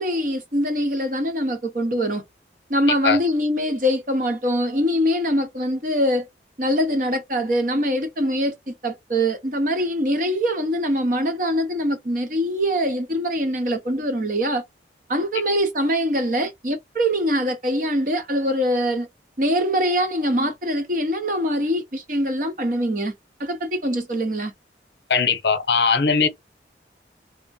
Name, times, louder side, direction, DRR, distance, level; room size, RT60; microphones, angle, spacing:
voice 1, 0.0-2.2 2.7-6.3 6.6-14.6 15.1-19.1 19.4-23.1 23.4-24.5, equal, 50° right, 0.9 m, -23 dB
voice 2, 25.1-26.3, left 5 dB, 75° left, 0.8 m, -19 dB
3.4 x 2.1 x 4.0 m
head